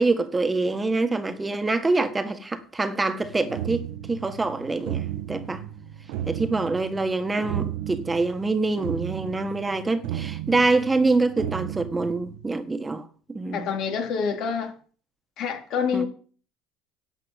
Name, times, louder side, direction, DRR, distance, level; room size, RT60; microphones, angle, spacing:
voice 1, 0.0-5.6 6.3-13.7 15.9-16.0, right 3 dB, 15° right, 1.5 m, -25 dB
sound 1, 3.2-12.5, right 12 dB, 75° right, 1.1 m, -34 dB
voice 2, 13.5-14.7 15.4-16.1, left 6 dB, 65° left, 3.4 m, -27 dB
11.0 x 6.7 x 8.1 m
supercardioid pair, 90°, 0 cm